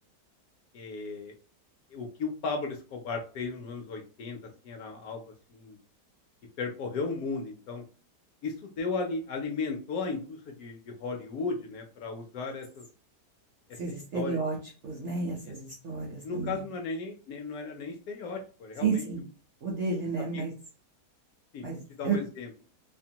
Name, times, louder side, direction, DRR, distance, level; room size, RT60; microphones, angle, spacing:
voice 1, 0.7-1.3 1.9-4.4 4.6-5.8 6.6-7.8 8.4-12.9 14.1-14.4 15.4-15.5 16.2-19.0 20.3-20.4 21.5-21.7 22.0-22.5, left 4 dB, 70° left, 3 dB, 0.9 m, -35 dB
voice 2, 13.7-14.6 14.8-16.6 18.8-19.2 19.6-20.5 21.6-22.2, right 5 dB, 65° right, -1 dB, 0.7 m, -31 dB
2.8 x 2.1 x 2.7 m, 0.37 s
omnidirectional pair, 1.8 m